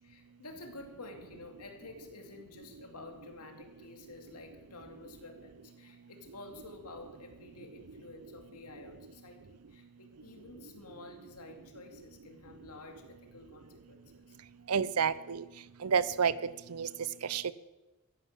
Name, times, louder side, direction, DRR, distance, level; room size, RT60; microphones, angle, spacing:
voice 1, 0.0-14.4, left 2 dB, 85° left, 4 dB, 2.6 m, -50 dB
voice 2, 14.7-15.4 15.8-16.9 17.3-17.5, right 6 dB, 80° right, 18 dB, 0.7 m, -30 dB
14.0 x 11.0 x 7.6 m, 1.1 s
head